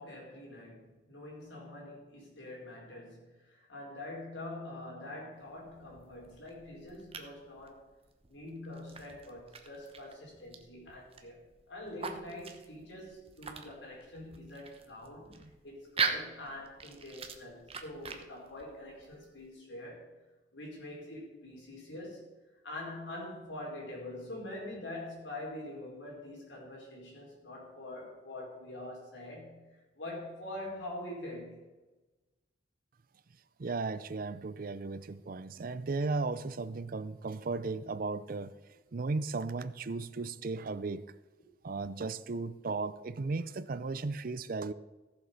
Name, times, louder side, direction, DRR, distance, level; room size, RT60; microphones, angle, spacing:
voice 1, 0.0-7.9 8.3-11.4 11.7-20.1 20.5-22.3 22.6-31.6, left 1 dB, 80° left, -2 dB, 4.7 m, -45 dB
sound 1, 5.4-19.5, right 5 dB, 35° right, 1.0 m, -42 dB
voice 2, 33.6-38.6 38.9-41.1 41.6-44.7, right 3 dB, 50° right, 15 dB, 0.5 m, -35 dB
15.0 x 7.3 x 5.3 m, 1.1 s
head